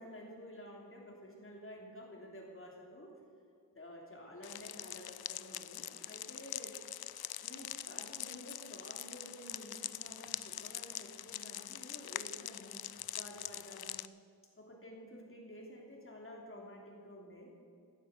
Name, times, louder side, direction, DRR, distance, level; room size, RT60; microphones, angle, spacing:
voice 1, 0.0-3.1 3.7-6.8 7.4-14.0 14.6-17.5, equal, 35° left, -1 dB, 3.2 m, -51 dB
sound 1, 4.4-14.1, left 11 dB, 70° left, 0.5 m, -44 dB
15.0 x 9.5 x 8.0 m, 2.4 s
wide cardioid pair, 125°, 38 cm